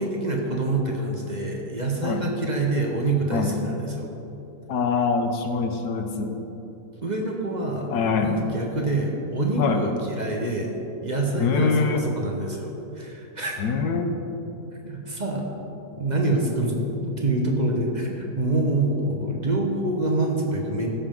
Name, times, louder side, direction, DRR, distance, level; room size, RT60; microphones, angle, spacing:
voice 1, 0.0-4.1 7.0-7.9 8.2-10.8 11.0-13.5 14.8-15.4 16.0-16.8 17.0-20.9, right 2 dB, 30° right, 0 dB, 1.0 m, -26 dB
voice 2, 4.7-6.4 7.9-8.4 8.9-9.0 9.6-9.8 11.4-12.1 13.6-14.1, left 5 dB, 75° left, 5 dB, 1.3 m, -24 dB
15.5 x 7.1 x 3.7 m, 3.0 s
omnidirectional pair, 1.7 m